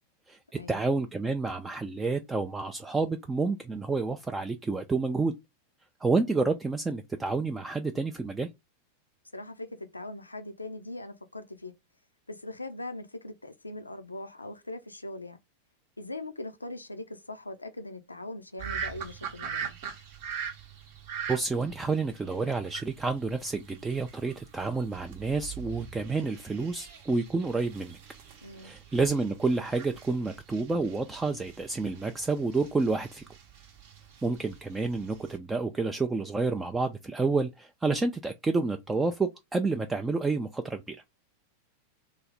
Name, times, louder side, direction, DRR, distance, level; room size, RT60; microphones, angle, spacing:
voice 1, 0.7-5.3 6.0-8.5 21.3-28.0 28.6-33.2 34.2-41.0, right 3 dB, 10° right, 0.3 m, -29 dB
voice 2, 9.3-11.7 12.3-15.4 16.0-19.8 28.4-28.7, left 2 dB, 80° left, 0.4 m, -41 dB
sound 1, 18.6-35.4, right 7 dB, 50° right, 0.7 m, -43 dB
3.1 x 2.1 x 3.8 m
figure-of-eight pair, 90°, 0 cm